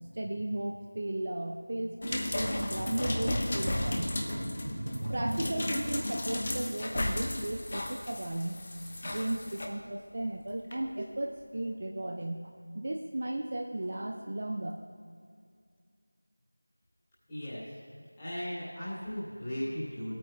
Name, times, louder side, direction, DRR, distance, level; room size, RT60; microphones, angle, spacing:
voice 1, 0.1-8.6 9.0-14.8, right 1 dB, 35° right, 3 dB, 0.6 m, -35 dB
sound 1, 2.0-9.7 10.7-10.8, left 1 dB, 25° left, 0.8 m, -34 dB
voice 2, 17.3-17.6 18.2-20.2, equal, 10° left, -13 dB, 3.0 m, -37 dB
19.0 x 8.8 x 3.3 m, 2.2 s
figure-of-eight pair, 175°, 0 cm